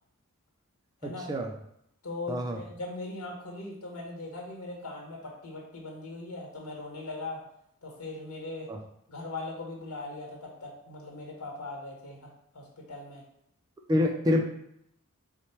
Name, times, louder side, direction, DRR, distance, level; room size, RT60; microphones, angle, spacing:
voice 1, 1.0-1.5 2.3-2.6 8.7-8.8 13.9-14.4, left 1 dB, 15° right, 1 dB, 0.3 m, -26 dB
voice 2, 2.0-7.4 7.8-8.7 9.1-12.3 12.5-13.2 13.9-14.1, left 2 dB, 75° left, -1 dB, 1.2 m, -40 dB
4.3 x 2.1 x 4.3 m, 0.75 s
head